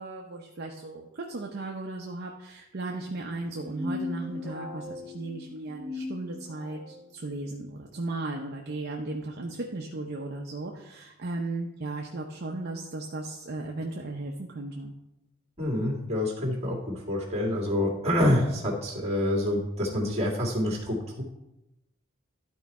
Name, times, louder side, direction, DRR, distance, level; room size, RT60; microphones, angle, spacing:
voice 1, 0.0-14.9, right 2 dB, 55° right, 1 dB, 0.7 m, -36 dB
sound 1, 3.5-6.9, left 2 dB, 5° left, 1.6 m, -38 dB
voice 2, 15.6-21.2, left 1 dB, 35° right, -2 dB, 2.1 m, -27 dB
12.0 x 4.5 x 4.2 m, 0.92 s
head